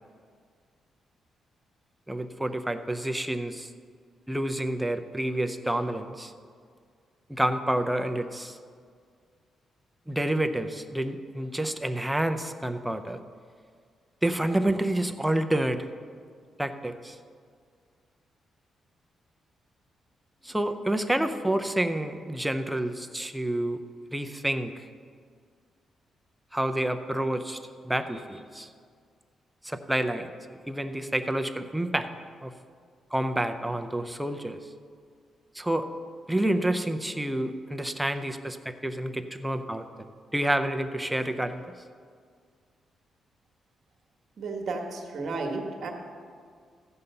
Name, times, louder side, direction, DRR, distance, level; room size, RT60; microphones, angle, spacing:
voice 1, 2.1-3.7 4.3-6.3 7.3-8.6 10.1-13.2 14.2-15.9 16.6-17.2 20.4-23.8 24.1-24.8 26.5-28.7 29.6-30.3 30.7-32.1 32.4-32.5 33.1-34.6 35.5-35.9 36.3-41.6, right 1 dB, 5° right, 7 dB, 0.5 m, -29 dB
voice 2, 44.4-45.9, right 3 dB, 55° right, 3 dB, 1.5 m, -33 dB
14.5 x 5.5 x 6.7 m, 2.1 s
wide cardioid pair, 165°, 0 cm